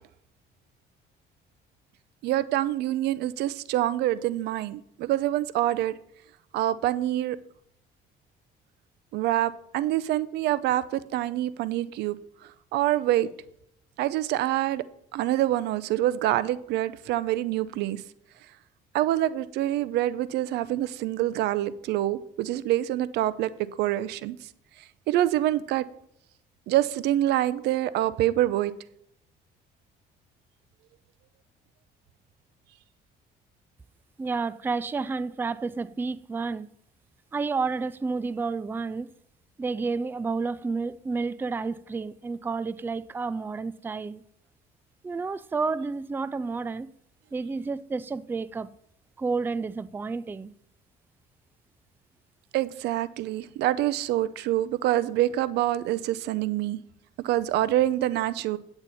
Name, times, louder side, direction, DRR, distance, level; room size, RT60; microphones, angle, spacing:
voice 1, 2.2-6.0 6.5-7.4 9.1-12.2 12.7-13.3 14.0-14.8 15.1-18.0 18.9-23.5 23.8-24.5 25.1-25.9 26.7-28.7 52.5-56.8 57.2-58.6, right 14 dB, 80° right, 0.6 m, -26 dB
voice 2, 34.2-36.7 37.3-39.1 39.6-44.2 45.0-46.9 47.3-48.7 49.2-50.5, right 4 dB, 10° right, 0.4 m, -30 dB
9.1 x 8.9 x 4.1 m
cardioid pair, 110°, 17 cm